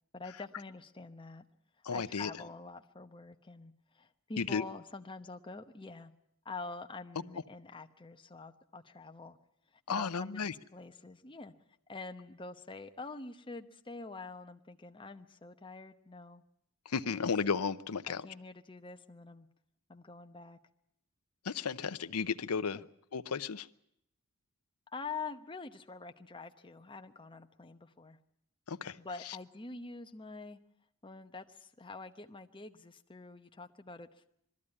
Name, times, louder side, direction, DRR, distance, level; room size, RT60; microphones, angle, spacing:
voice 1, 0.1-1.4 1.9-6.1 6.4-9.4 9.9-11.5 11.9-16.4 17.0-17.3 18.0-19.5 19.9-20.6 22.7-22.9 24.9-28.2 29.0-30.6 31.0-34.3, left 3 dB, 25° left, 6 dB, 1.0 m, -46 dB
voice 2, 1.8-2.3 4.4-4.7 9.9-10.5 16.9-18.3 21.4-22.8 23.1-23.7 28.7-29.0 29.3-29.4, left 5 dB, 85° left, 13 dB, 0.7 m, -34 dB
21.0 x 14.0 x 9.8 m, 0.77 s
head